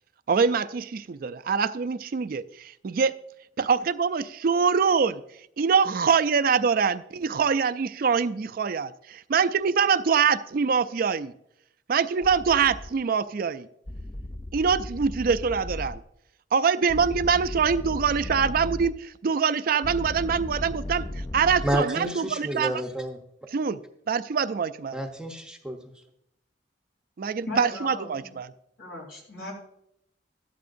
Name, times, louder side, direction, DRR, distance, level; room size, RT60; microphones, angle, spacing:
voice 1, 0.3-3.1 3.6-5.2 5.6-11.3 11.9-13.7 14.5-16.0 16.5-21.1 21.3-22.8 23.5-23.8 24.1-25.0 27.2-28.5, right 6 dB, 50° right, 0.4 m, -24 dB
sound 1, 12.2-12.9 13.9-16.0 16.9-18.9 19.8-21.8, left 1 dB, 15° left, 0.4 m, -35 dB
voice 2, 21.6-23.2 24.9-25.8, right 1 dB, 5° right, 0.8 m, -29 dB
voice 3, 27.5-28.3 28.8-29.5, equal, 65° left, 3.6 m, -36 dB
14.5 x 12.0 x 2.6 m
head